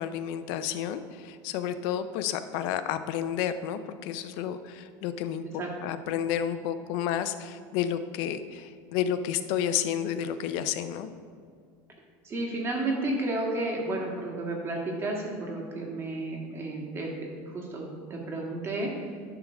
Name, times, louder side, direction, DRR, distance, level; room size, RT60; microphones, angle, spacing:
voice 1, 0.0-11.1, left 9 dB, 65° left, 11 dB, 0.6 m, -31 dB
voice 2, 12.2-17.1 17.4-19.1, right 2 dB, 30° right, -1 dB, 1.8 m, -32 dB
11.0 x 3.7 x 6.4 m, 2.1 s
supercardioid pair, 135°, 9 cm